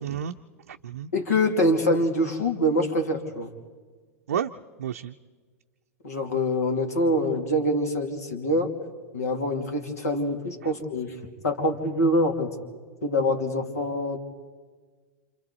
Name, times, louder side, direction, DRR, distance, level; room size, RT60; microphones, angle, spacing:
voice 1, 0.0-0.4 0.7-1.1 4.3-4.5 4.8-5.1 10.6-10.7, right 9 dB, 70° right, 5 dB, 0.6 m, -31 dB
voice 2, 1.1-3.5 6.0-8.7 9.1-11.2 11.4-12.5 13.0-14.2, left 1 dB, 75° left, 3 dB, 2.9 m, -25 dB
28.5 x 27.0 x 4.1 m, 1.5 s
figure-of-eight pair, 95°, 8 cm